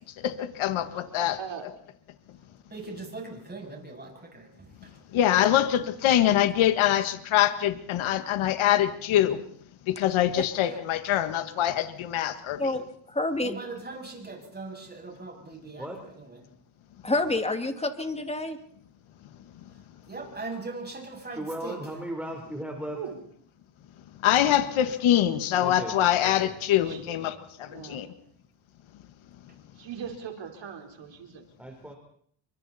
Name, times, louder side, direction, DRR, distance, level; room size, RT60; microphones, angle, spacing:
voice 1, 0.2-1.7 5.1-9.4 9.9-12.8 24.2-28.1, left 12 dB, 75° left, 10 dB, 1.7 m, -24 dB
voice 2, 0.8-1.7 2.8-3.2 22.9-23.3 26.8-27.0 27.6-28.0 29.7-31.4, right 7 dB, 60° right, 4 dB, 4.4 m, -41 dB
voice 3, 2.7-4.5 13.4-15.9 16.2-16.4 20.1-21.8, right 3 dB, 20° right, 1 dB, 7.7 m, -39 dB
voice 4, 12.6-13.6 17.0-18.6, left 2 dB, 15° left, 7 dB, 2.4 m, -28 dB
voice 5, 21.3-23.0 25.6-25.9 26.4-26.6 27.1-27.4 31.6-32.0, right 1 dB, 5° right, 1 dB, 4.0 m, -36 dB
28.0 x 24.5 x 4.3 m, 0.63 s
cardioid pair, 100°, 48 cm